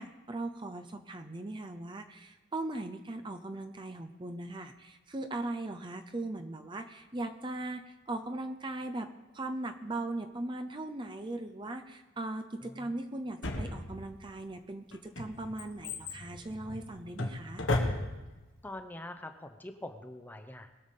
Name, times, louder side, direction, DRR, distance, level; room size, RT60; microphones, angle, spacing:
voice 1, 0.0-17.7, right 2 dB, 25° right, 7 dB, 0.6 m, -39 dB
Drawer open or close, 13.4-14.3 14.9-18.4 18.7-18.8, left 2 dB, 80° left, 1.7 m, -34 dB
voice 2, 18.6-20.9, left 1 dB, 10° left, 7 dB, 0.8 m, -44 dB
21.5 x 7.2 x 5.3 m, 1.1 s
head